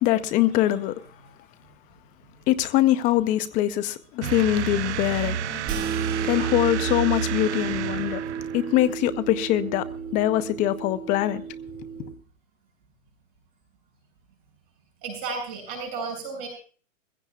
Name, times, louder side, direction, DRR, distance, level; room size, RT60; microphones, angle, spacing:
voice 1, 0.0-1.0 2.5-5.6 6.3-8.2 8.5-9.9 10.1-11.4, left 14 dB, 20° left, 0.7 m, -23 dB
sound 1, 4.2-8.9, right 9 dB, 60° right, 0.8 m, -30 dB
sound 2, 5.6-12.1, right 6 dB, 20° right, 2.7 m, -33 dB
voice 2, 15.0-16.5, right 4 dB, 40° right, 7.3 m, -33 dB
21.0 x 16.0 x 2.4 m
hypercardioid pair, 140°, 40 cm